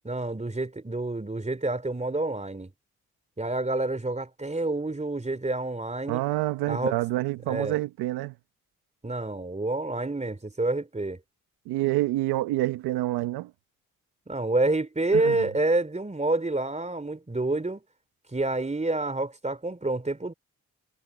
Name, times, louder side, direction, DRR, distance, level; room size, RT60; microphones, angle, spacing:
voice 1, 0.1-2.7 3.4-6.2 6.7-7.0 7.5-7.8 9.0-11.2 14.3-17.8 18.3-20.3, right 2 dB, 20° right, 3.3 m, -28 dB
voice 2, 6.1-8.3 11.7-13.5 15.1-15.4, right 17 dB, 85° right, 1.1 m, -27 dB
hypercardioid pair, 45°, 38 cm